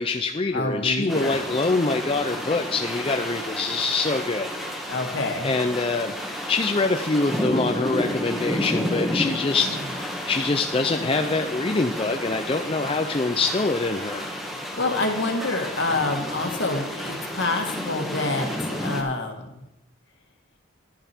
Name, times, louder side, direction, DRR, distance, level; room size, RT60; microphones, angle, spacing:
voice 1, 0.0-4.5 5.4-6.2 6.5-14.3, left 3 dB, 25° left, 5 dB, 0.5 m, -24 dB
voice 2, 0.5-1.4 4.9-5.5 9.6-9.8 14.8-19.5, left 2 dB, 60° left, 4 dB, 1.7 m, -27 dB
sound 1, 1.1-19.0, equal, ahead, 1.3 m, -31 dB
11.5 x 10.0 x 4.4 m, 0.92 s
head